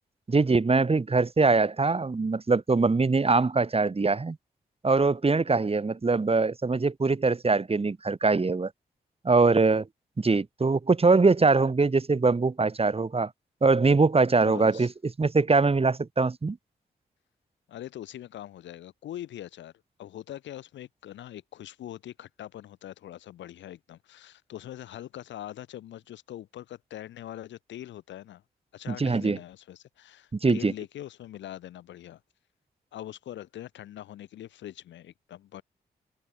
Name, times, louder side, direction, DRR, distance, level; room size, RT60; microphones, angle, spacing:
voice 1, 0.3-4.4 4.8-8.7 9.2-9.9 10.2-13.3 13.6-14.9 15.2-16.6 28.9-29.4 30.4-30.7, right 3 dB, 30° right, 1.2 m, -22 dB
voice 2, 14.4-14.9 17.7-19.7 20.0-28.4 28.7-32.2 32.9-35.6, left 12 dB, 85° left, 1.9 m, -42 dB
supercardioid pair, 40°, 19 cm